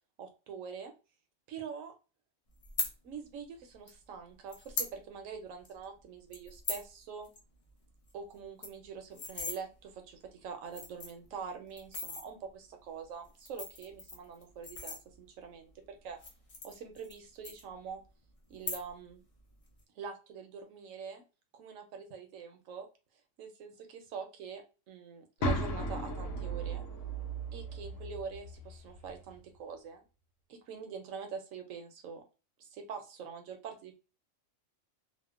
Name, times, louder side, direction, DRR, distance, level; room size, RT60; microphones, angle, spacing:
voice 1, 0.2-0.9 1.5-1.9 3.0-7.3 8.1-16.2 16.6-18.0 18.5-19.2 20.0-21.2 21.5-22.9 23.4-26.8 27.5-30.0 30.5-32.2 32.6-34.0, right 6 dB, 80° right, 5 dB, 1.0 m, -44 dB
sound 1, 2.6-2.9 3.9-4.0 4.5-4.9 5.3-5.4 5.6-5.9 6.3-6.9 7.2-7.4 7.7-7.8 8.1-8.2 8.4-9.6 10.3-10.4 10.7-11.3 11.8-12.3 13.2-15.4 16.1-17.2 17.4-18.1 18.5-19.1 19.4-19.8, left 3 dB, 60° left, 0.3 m, -39 dB
sound 2, 25.4-29.4, right 1 dB, 85° left, 1.1 m, -36 dB
2.8 x 2.1 x 2.3 m, 0.31 s
omnidirectional pair, 1.4 m